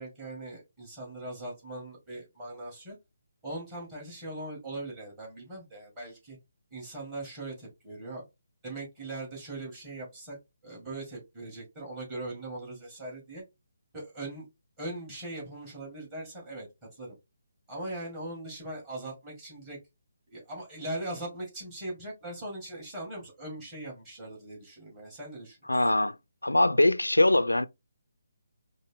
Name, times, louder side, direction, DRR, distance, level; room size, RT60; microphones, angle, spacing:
voice 1, 0.0-3.0 3.4-6.4 6.7-8.2 8.6-10.4 10.6-13.4 13.9-14.5 14.8-16.7 16.9-17.1 17.7-19.8 20.3-25.6, right 2 dB, 15° right, 2.0 m, -40 dB
voice 2, 25.7-26.2 26.4-27.7, left 1 dB, 75° left, 0.4 m, -22 dB
5.0 x 2.1 x 3.4 m
figure-of-eight pair, 145°, 0 cm